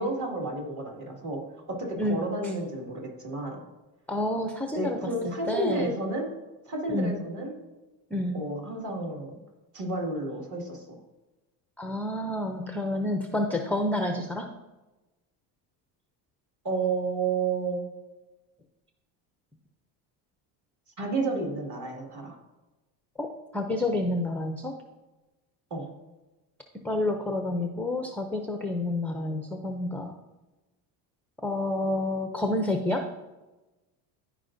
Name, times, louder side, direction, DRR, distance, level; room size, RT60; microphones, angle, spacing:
voice 1, 0.0-1.4 1.7-3.6 4.7-6.3 6.7-7.5 8.3-9.4 9.7-10.8 16.6-17.9 21.0-22.4 25.7-25.9, right 3 dB, 40° right, -1 dB, 2.2 m, -31 dB
voice 2, 4.1-5.0 5.2-5.9 6.9-7.1 8.1-8.3 11.8-14.5 23.2-24.8 26.8-30.2 31.4-33.1, left 1 dB, 5° left, 4 dB, 0.4 m, -29 dB
13.5 x 5.0 x 2.6 m, 1.1 s
cardioid pair, 120°, 44 cm